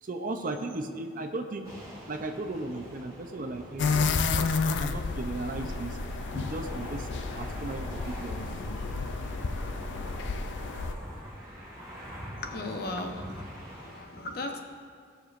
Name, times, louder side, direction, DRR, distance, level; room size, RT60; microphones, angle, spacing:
voice 1, 0.0-1.7 2.1-6.0 6.3-7.1 7.3-8.6, right 2 dB, 45° right, 6 dB, 0.6 m, -36 dB
sound 1, 1.6-14.0, equal, 20° right, 2.0 m, -44 dB
sound 2, 3.8-10.9, left 4 dB, 70° left, 0.5 m, -31 dB
voice 2, 12.4-14.6, left 2 dB, 55° left, 3 dB, 0.9 m, -37 dB
16.5 x 6.7 x 2.5 m, 2.1 s
head